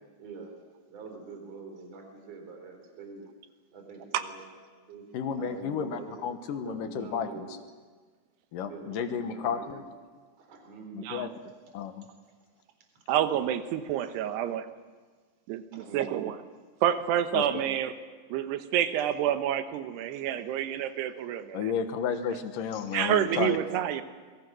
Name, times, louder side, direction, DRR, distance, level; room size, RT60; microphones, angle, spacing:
voice 1, 0.2-0.5 0.9-3.3 3.7-5.0 5.3-6.3 6.6-7.6 8.6-9.9 10.4-11.3 15.7-16.1 19.0-19.1 20.1-20.2, right 4 dB, 35° right, 3 dB, 4.5 m, -45 dB
voice 2, 5.1-7.4 8.5-9.8 10.9-11.3 11.7-12.1 17.3-17.6 21.5-23.6, left 7 dB, 65° left, 8 dB, 2.3 m, -32 dB
voice 3, 13.1-14.7 15.5-16.4 16.8-18.0 18.3-21.7 22.9-24.0, right 11 dB, 75° right, 9 dB, 3.0 m, -28 dB
27.0 x 22.0 x 6.2 m, 1.5 s
omnidirectional pair, 5.1 m